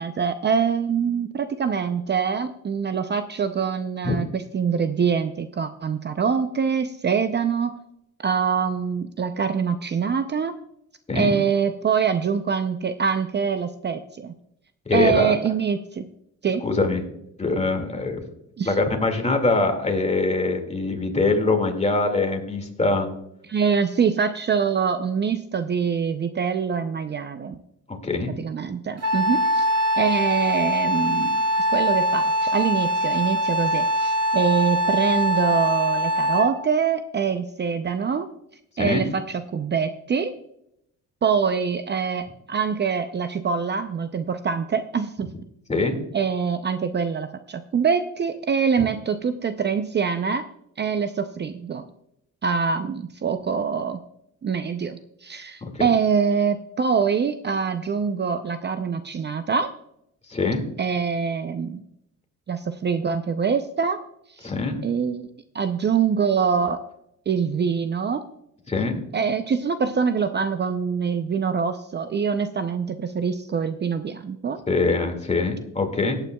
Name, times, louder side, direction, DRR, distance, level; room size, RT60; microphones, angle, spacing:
voice 1, 0.0-7.8 8.2-10.6 11.1-14.3 14.9-16.1 16.4-16.6 18.6-18.7 23.5-27.6 28.4-29.7 30.0-31.4 31.7-38.3 38.8-40.3 41.2-45.3 46.1-50.4 50.8-51.8 52.4-54.0 54.4-59.7 60.8-61.8 62.5-64.0 64.4-64.5 64.8-65.3 65.5-66.8 67.3-68.2 69.1-74.6, right 6 dB, 35° right, 10 dB, 0.6 m, -24 dB
voice 2, 14.9-15.3 16.6-17.0 17.4-18.2 18.6-23.1 28.0-28.3 38.8-39.1 45.7-46.0 55.6-55.9 60.3-60.6 64.4-64.8 68.7-69.0 74.7-76.1, left 3 dB, 20° left, 4 dB, 2.2 m, -23 dB
Wind instrument woodwind instrument, 29.0-36.6, equal, 55° right, 1.4 m, -23 dB
17.5 x 9.0 x 2.3 m, 0.78 s
cardioid pair, 90°, 30 cm